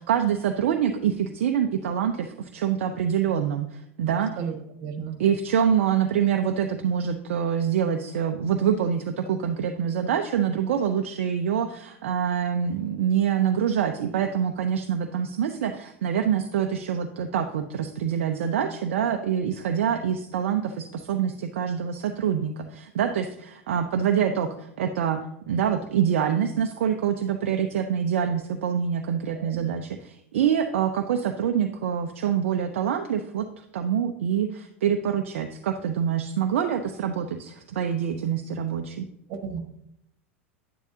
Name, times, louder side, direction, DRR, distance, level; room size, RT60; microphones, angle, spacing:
voice 1, 0.0-4.3 5.2-25.2 25.5-39.1, right 8 dB, 65° right, 6 dB, 0.7 m, -25 dB
voice 2, 4.8-5.2 29.3-29.6 39.3-39.6, right 6 dB, 45° right, 6 dB, 1.7 m, -33 dB
10.5 x 9.4 x 2.8 m, 0.79 s
figure-of-eight pair, 85°, 7 cm